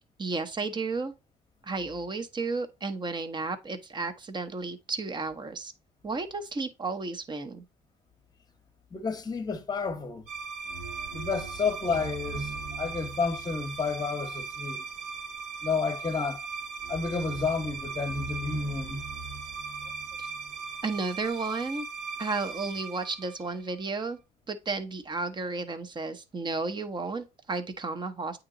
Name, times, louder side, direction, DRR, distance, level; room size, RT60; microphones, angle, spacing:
voice 1, 0.2-1.1 1.6-5.7 6.0-7.6 20.2-20.3 20.8-21.9 22.2-24.2 24.5-28.4, right 3 dB, 25° right, 0.9 m, -33 dB
voice 2, 8.9-10.3 11.1-14.8 15.6-16.4 16.9-19.1, left 5 dB, 25° left, 1.0 m, -31 dB
sound 1, 10.3-23.9, right 4 dB, 80° right, 1.6 m, -38 dB
8.7 x 2.9 x 3.8 m
cardioid pair, 110°, 17 cm